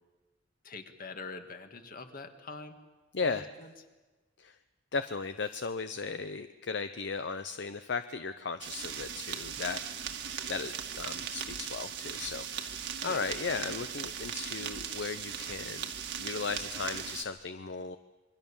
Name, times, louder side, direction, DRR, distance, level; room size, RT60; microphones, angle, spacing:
voice 1, 0.6-2.8 3.2-3.7 13.0-13.2, left 3 dB, 50° left, 6 dB, 2.1 m, -44 dB
voice 2, 3.1-3.5 4.4-4.5 4.9-15.9 16.2-18.0, left 4 dB, 65° left, 10 dB, 0.7 m, -36 dB
sound 1, 8.6-17.2, right 8 dB, 65° right, 1.8 m, -38 dB
27.0 x 22.5 x 7.3 m, 1.2 s
head